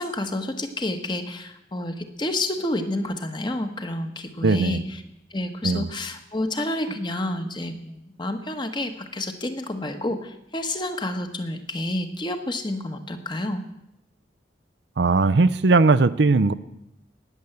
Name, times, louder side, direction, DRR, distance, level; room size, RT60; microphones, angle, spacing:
voice 1, 0.0-5.0 5.3-13.6, left 1 dB, 25° left, 7 dB, 1.2 m, -29 dB
voice 2, 4.4-4.8 5.6-5.9 15.0-16.5, right 3 dB, 75° right, 14 dB, 0.6 m, -18 dB
19.0 x 7.1 x 7.9 m, 0.85 s
head